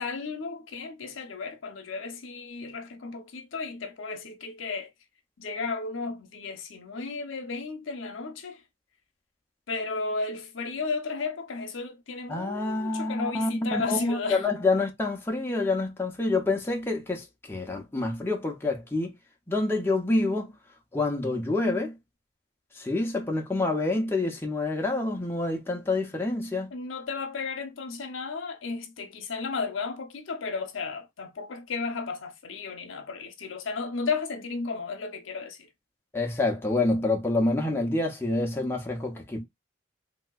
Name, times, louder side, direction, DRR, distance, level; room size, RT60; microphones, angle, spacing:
voice 1, 0.0-4.9 5.4-8.6 9.7-14.5 26.7-35.7, left 4 dB, 80° left, 0.7 m, -34 dB
voice 2, 12.3-19.1 19.5-20.5 20.9-22.0 22.7-26.7 36.1-39.4, left 2 dB, 10° left, 0.5 m, -27 dB
3.2 x 2.8 x 2.3 m
head